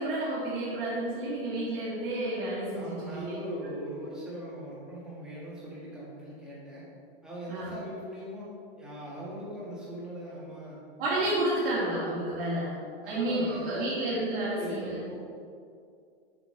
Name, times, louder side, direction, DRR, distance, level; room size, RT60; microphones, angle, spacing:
voice 1, 0.0-3.6 7.5-7.7 11.0-12.8 13.0-15.0, right 1 dB, 65° right, -8 dB, 1.9 m, -31 dB
voice 2, 2.7-6.9 7.2-8.5 8.8-10.8 13.0-14.0 14.5-15.4, right 1 dB, ahead, -8 dB, 1.6 m, -40 dB
8.2 x 6.2 x 3.2 m, 2.3 s
supercardioid pair, 165°, 30 cm